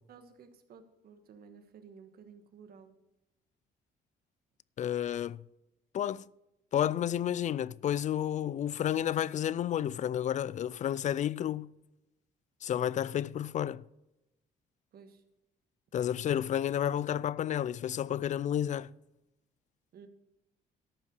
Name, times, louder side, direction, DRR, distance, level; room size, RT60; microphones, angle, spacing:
voice 1, 0.1-3.0 14.9-15.2 19.9-20.1, right 6 dB, 70° right, 1.4 m, -54 dB
voice 2, 4.8-5.4 5.9-6.3 6.7-11.7 12.6-13.8 15.9-18.9, left 10 dB, 50° left, 0.4 m, -31 dB
13.5 x 5.8 x 6.5 m
supercardioid pair, 70°, 17 cm